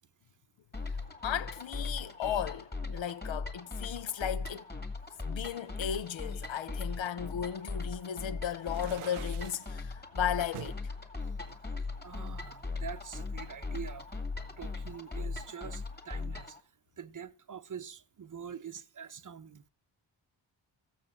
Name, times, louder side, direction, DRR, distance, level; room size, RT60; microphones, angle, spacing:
sound 1, 0.7-16.6, left 3 dB, 20° left, 1.9 m, -39 dB
voice 1, 1.2-4.7 5.2-10.9, left 9 dB, 70° left, 0.9 m, -35 dB
sound 2, 8.6-9.7 10.5-10.8 11.4-12.5, right 13 dB, 85° right, 0.7 m, -46 dB
voice 2, 12.0-14.1 14.6-16.6 17.0-19.6, right 7 dB, 40° right, 0.8 m, -45 dB
15.0 x 7.0 x 7.1 m
wide cardioid pair, 135°, 49 cm